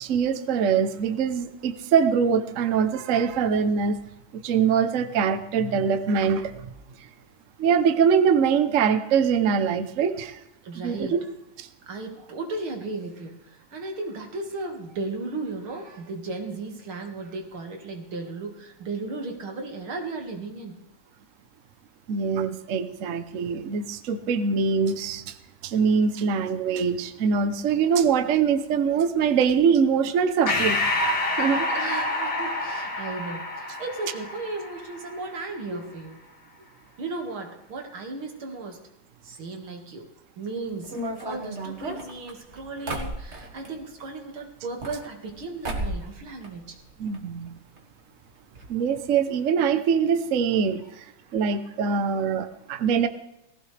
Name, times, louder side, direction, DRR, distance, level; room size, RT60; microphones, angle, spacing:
voice 1, 0.0-4.0 4.4-6.7 7.6-10.4 10.8-11.2 11.6-11.7 22.1-25.3 25.6-30.8 31.4-31.7 47.0-47.5 48.7-51.0 51.3-53.1, right 6 dB, 50° right, 10 dB, 1.0 m, -23 dB
voice 2, 10.6-11.2 11.9-20.8 31.7-36.2 37.0-38.8 39.2-40.1 40.4-46.8 51.3-51.4, right 3 dB, 85° right, 2 dB, 2.8 m, -35 dB
Breathing, 30.5-35.3, left 2 dB, 55° left, 2.4 m, -27 dB
sound 1, 40.8-43.7 44.6-45.4 45.6-46.1 46.4-47.2 47.5-47.6 47.8-47.9 48.6-48.7 49.0-49.1, right 1 dB, 35° right, 2.0 m, -34 dB
19.0 x 15.0 x 3.4 m, 0.88 s
omnidirectional pair, 2.2 m